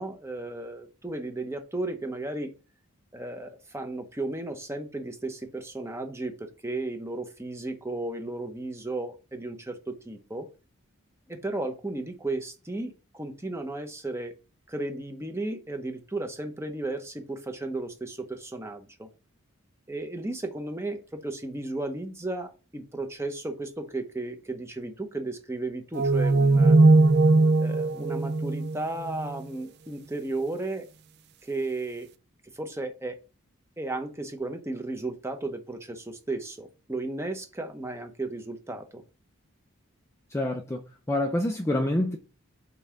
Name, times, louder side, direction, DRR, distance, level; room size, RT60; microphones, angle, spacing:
voice 1, 0.0-2.5 3.1-10.5 11.3-14.3 14.7-19.1 19.9-26.8 27.6-30.9 31.4-32.1 32.5-33.2 33.8-39.0, right 2 dB, 10° right, 0.8 m, -34 dB
sound 1, 26.0-29.4, right 3 dB, 50° right, 0.4 m, -20 dB
voice 2, 40.3-42.2, left 1 dB, 10° left, 0.5 m, -27 dB
5.4 x 3.7 x 5.7 m
head